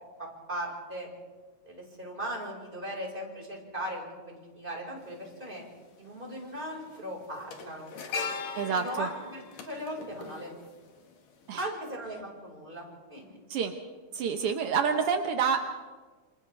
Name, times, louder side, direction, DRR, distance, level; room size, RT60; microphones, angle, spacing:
voice 1, 0.2-1.1 1.6-5.6 6.0-7.9 8.7-10.5 11.6-13.4, equal, 15° right, -2 dB, 5.1 m, -38 dB
sound 1, 5.0-5.1 6.3-6.6 6.8-11.1 11.4-11.6, left 4 dB, 70° left, 3.3 m, -39 dB
voice 2, 8.5-9.1 11.5-11.6 13.5-13.7 14.1-15.6, right 6 dB, 75° right, 5 dB, 1.3 m, -28 dB
28.0 x 27.5 x 3.5 m, 1.4 s
omnidirectional pair, 4.1 m